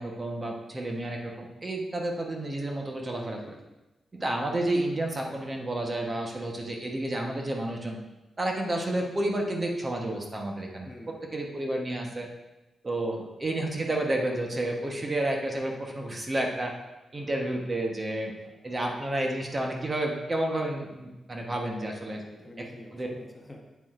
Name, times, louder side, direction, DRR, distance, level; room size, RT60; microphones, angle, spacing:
voice 1, 0.0-3.5 4.1-8.0 8.4-10.9 11.3-12.3 12.8-16.7 17.1-18.3 18.6-22.2 22.6-22.7 22.9-23.1, right 1 dB, 30° right, 1 dB, 1.1 m, -30 dB
voice 2, 3.1-3.7 10.8-11.2 18.2-18.6 22.1-23.6, left 1 dB, 20° left, 1 dB, 1.0 m, -48 dB
8.4 x 7.5 x 2.5 m, 1.0 s
cardioid pair, 95°, 0 cm